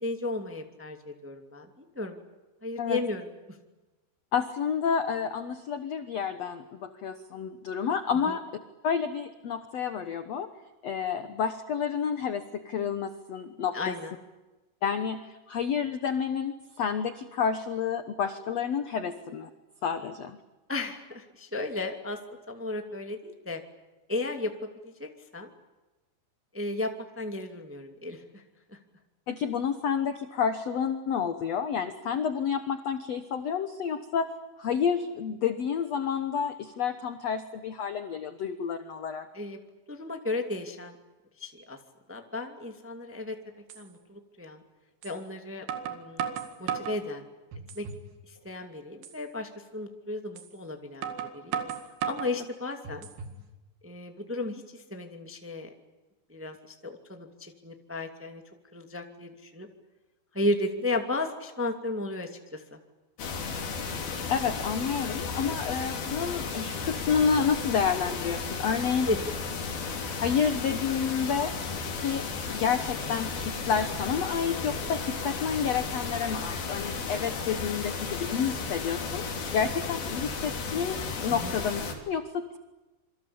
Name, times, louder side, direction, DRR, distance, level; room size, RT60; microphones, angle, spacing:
voice 1, 0.0-2.2 2.6-3.2 8.3-8.4 13.7-14.1 20.7-22.2 22.5-23.6 24.1-25.5 26.5-28.4 39.3-39.6 39.9-41.0 41.4-41.8 42.1-43.4 43.7-44.6 45.0-46.3 46.6-47.2 47.7-47.8 48.3-51.6 52.0-53.1 53.8-55.7 56.3-58.4 58.7-59.7 60.3-62.8 69.0-69.2 81.3-81.5, left 2 dB, 5° right, 5 dB, 1.2 m, -34 dB
voice 2, 4.3-8.4 8.8-10.5 10.8-14.0 14.8-19.5 19.8-20.4 29.3-34.3 34.6-39.3 64.3-69.1 70.2-71.5 71.9-79.2 79.5-82.6, left 7 dB, 75° left, 9 dB, 1.5 m, -29 dB
sound 1, 43.1-43.2 43.7-43.8 45.0-45.2 45.7-47.0 47.5-48.1 48.4-48.5 49.0-49.2 50.4-50.5 51.0-52.3 52.8-53.4, right 8 dB, 75° right, 4.1 m, -35 dB
sound 2, 63.2-81.9, left 4 dB, 60° left, 5.0 m, -34 dB
27.5 x 24.5 x 8.7 m, 1.1 s
omnidirectional pair, 4.8 m